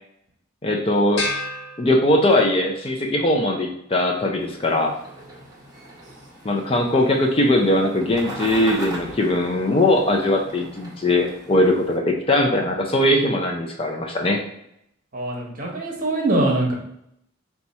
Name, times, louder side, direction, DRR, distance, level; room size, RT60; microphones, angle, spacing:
voice 1, 0.6-1.3 1.8-4.9 6.4-14.4, left 1 dB, 25° left, 2 dB, 0.4 m, -20 dB
sound 1, 1.2-2.7, left 2 dB, 55° left, 1.1 m, -30 dB
sound 2, 4.4-12.0, right 1 dB, 20° right, 0.8 m, -39 dB
voice 2, 15.1-16.7, right 2 dB, 40° right, -1 dB, 0.9 m, -23 dB
4.0 x 2.3 x 4.1 m, 0.76 s
head